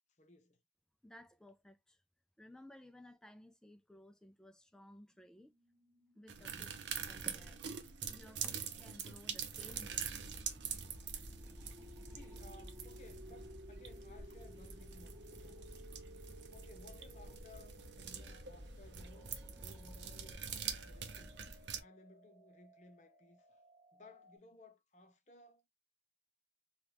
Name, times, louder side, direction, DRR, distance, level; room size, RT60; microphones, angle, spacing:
voice 1, 0.2-0.6 6.4-6.8 11.5-15.8 16.3-19.3 19.6-21.4 21.8-23.6 23.9-25.6, left 2 dB, 40° left, 0.7 m, -60 dB
voice 2, 1.0-2.0 2.4-5.5 6.1-6.7 7.1-7.6 8.0-10.2, left 1 dB, 5° left, 0.3 m, -57 dB
sound 1, 5.5-24.4, right 1 dB, 45° right, 0.9 m, -60 dB
sound 2, 6.3-21.8, right 7 dB, 85° right, 0.6 m, -45 dB
sound 3, 9.6-21.5, equal, 15° right, 1.3 m, -54 dB
3.5 x 2.3 x 2.9 m
head